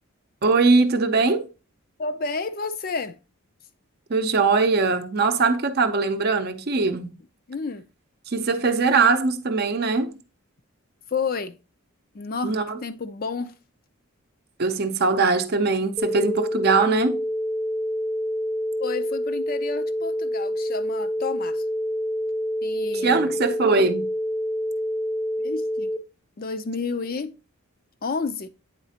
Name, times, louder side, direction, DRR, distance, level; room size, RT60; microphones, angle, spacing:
voice 1, 0.4-1.5 4.1-7.1 8.3-10.2 12.4-12.8 14.6-17.2 23.0-24.1, right 4 dB, 45° right, 0.6 m, -21 dB
voice 2, 2.0-3.2 7.5-7.8 11.1-11.6 12.1-13.5 18.8-21.6 22.6-23.4 25.4-25.9 26.4-27.3 28.0-28.5, left 4 dB, 40° left, 0.4 m, -30 dB
sound 1, 16.0-26.0, equal, 5° left, 0.7 m, -27 dB
9.0 x 4.0 x 2.8 m
head